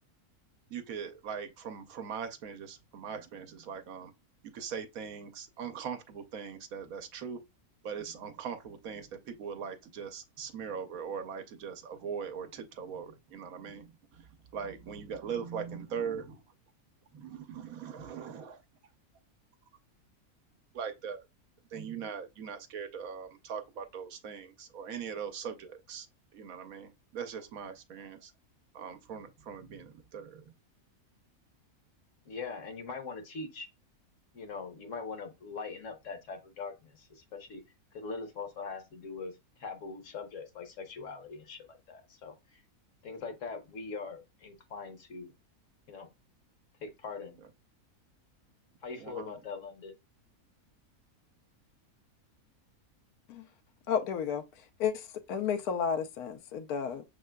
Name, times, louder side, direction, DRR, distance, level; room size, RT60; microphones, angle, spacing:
voice 1, 0.7-4.1 4.5-7.4 7.8-16.4 17.1-18.6 20.7-21.2 21.7-26.1 26.3-28.3 28.7-30.5 49.0-49.4, right 7 dB, 70° right, 1.1 m, -40 dB
voice 2, 32.2-33.7 34.3-37.6 37.9-39.3 39.6-42.6 43.0-45.3 45.9-46.1 46.8-47.4 48.8-49.9, left 4 dB, 60° left, 1.2 m, -42 dB
voice 3, 53.9-54.4 54.8-57.0, left 7 dB, 80° left, 1.2 m, -32 dB
6.4 x 3.7 x 2.2 m
omnidirectional pair, 1.6 m